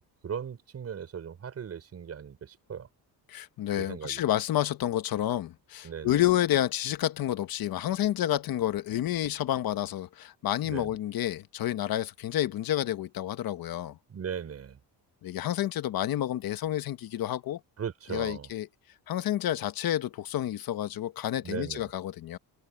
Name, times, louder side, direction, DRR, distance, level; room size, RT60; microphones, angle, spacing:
voice 1, 0.0-2.9 3.8-4.2 5.8-6.2 10.6-11.0 14.1-14.8 17.8-18.5 21.4-21.9, right 7 dB, 35° right, 6.2 m, -38 dB
voice 2, 3.3-14.0 15.2-17.6 18.1-18.7 19.1-22.4, left 12 dB, 60° left, 1.3 m, -29 dB
cardioid pair, 175°, 40 cm